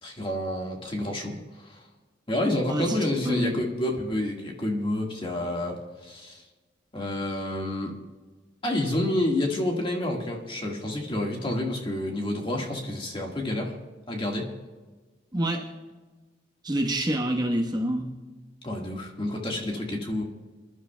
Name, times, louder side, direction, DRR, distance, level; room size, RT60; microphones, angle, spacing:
voice 1, 0.0-1.8 2.3-6.4 6.9-7.9 8.6-13.8 14.1-14.5 18.6-20.2, left 1 dB, 30° left, 1 dB, 1.7 m, -29 dB
voice 2, 3.2-3.5 15.3-15.7 16.6-18.1, right 1 dB, 25° right, 0 dB, 1.2 m, -26 dB
26.5 x 11.5 x 2.3 m, 1.3 s
head